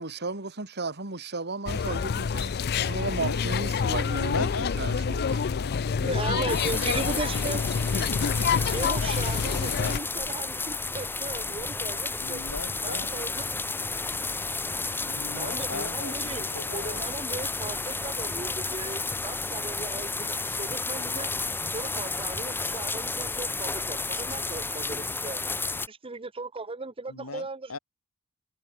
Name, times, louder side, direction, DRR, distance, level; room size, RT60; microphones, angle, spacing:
voice 1, 0.0-4.5 4.8-5.4, right 3 dB, 50° right, 2.9 m, -34 dB
sound 1, 1.7-10.0, left 6 dB, 50° left, 0.4 m, -27 dB
voice 2, 4.2-6.6 12.2-13.1 15.1-17.0 27.1-27.8, left 3 dB, 75° left, 2.0 m, -37 dB
voice 3, 6.0-7.6 8.6-12.4 12.8-13.5 15.3-21.3 21.7-25.5 25.9-27.8, right 3 dB, 25° right, 1.0 m, -36 dB
sound 2, 6.5-25.9, left 3 dB, 10° left, 1.0 m, -32 dB
head